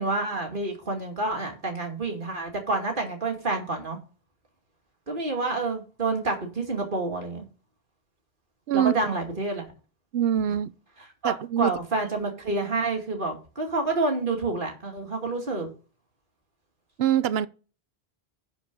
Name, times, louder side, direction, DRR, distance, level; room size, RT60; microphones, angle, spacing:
voice 1, 0.0-4.0 5.1-7.5 8.7-9.7 11.2-15.7, right 3 dB, 55° right, 2.6 m, -28 dB
voice 2, 8.7-9.1 10.1-10.7 11.2-11.7 17.0-17.5, right 10 dB, 75° right, 0.8 m, -24 dB
10.5 x 5.0 x 5.3 m
omnidirectional pair, 1.0 m